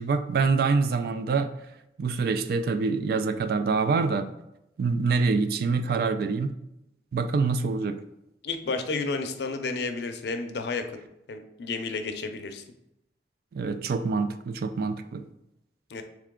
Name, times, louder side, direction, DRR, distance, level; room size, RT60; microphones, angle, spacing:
voice 1, 0.0-1.5 2.0-4.3 4.8-6.5 7.1-8.0 13.5-15.2, right 4 dB, 60° right, 10 dB, 0.3 m, -25 dB
voice 2, 8.4-11.0 11.3-12.6 15.9-16.0, left 4 dB, 65° left, 6 dB, 0.5 m, -31 dB
3.7 x 3.3 x 3.6 m, 0.85 s
head